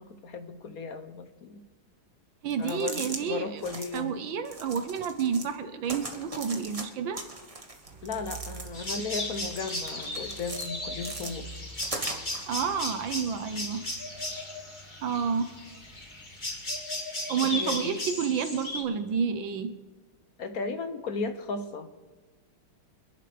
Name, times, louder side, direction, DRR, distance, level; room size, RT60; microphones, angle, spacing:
voice 1, 0.0-1.6 2.6-4.2 8.0-11.5 17.5-18.0 20.4-21.9, left 4 dB, 55° left, 8 dB, 1.1 m, -35 dB
voice 2, 2.4-3.6 3.9-7.2 12.5-13.8 15.0-15.5 17.3-19.7, right 7 dB, 75° right, 9 dB, 1.6 m, -30 dB
sound 1, 2.5-3.2 3.6-4.0 4.4-5.5 5.8-6.8 7.1-8.9 9.3-10.7 11.0-12.4, right 2 dB, 20° right, 1.2 m, -39 dB
sound 2, 7.8-16.8, right 3 dB, 90° right, 2.4 m, -49 dB
sound 3, 8.7-18.8, left 1 dB, 25° left, 2.3 m, -36 dB
26.0 x 11.5 x 3.4 m, 1.3 s
omnidirectional pair, 2.2 m